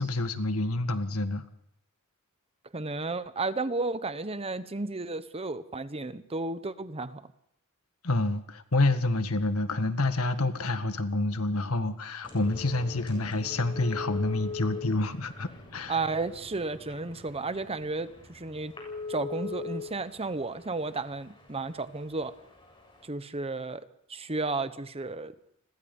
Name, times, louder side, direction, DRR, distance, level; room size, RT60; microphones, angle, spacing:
voice 1, 0.0-1.4 8.0-16.0, left 2 dB, 70° left, 9 dB, 1.8 m, -28 dB
voice 2, 2.7-7.2 15.9-18.7 19.1-22.3 23.0-23.8 24.1-25.3, right 3 dB, 25° right, 12 dB, 1.1 m, -33 dB
sound 1, 12.2-23.1, left 4 dB, 25° left, 7.2 m, -42 dB
30.0 x 21.5 x 5.5 m, 0.71 s
head